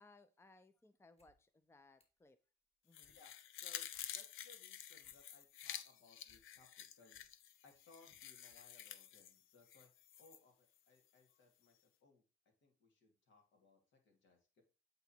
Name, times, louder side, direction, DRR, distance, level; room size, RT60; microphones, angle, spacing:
voice 1, 0.0-2.4 2.8-3.2, left 3 dB, 15° left, 0.5 m, -65 dB
sound 1, 1.0-1.4 1.6-2.3 2.6-3.2 3.6-3.7 3.9-4.5 4.8-6.4 6.8-7.4 7.9-8.0 8.5-8.7 9.0-9.1, left 1 dB, 30° left, 2.6 m, -76 dB
sound 2, 2.9-10.4 10.8-10.9, left 10 dB, 85° left, 0.6 m, -51 dB
voice 2, 3.6-7.3 7.6-9.9 10.2-12.2 12.6-14.6, left 3 dB, 70° left, 2.6 m, -67 dB
8.3 x 4.0 x 4.4 m
cardioid pair, 90°, 20 cm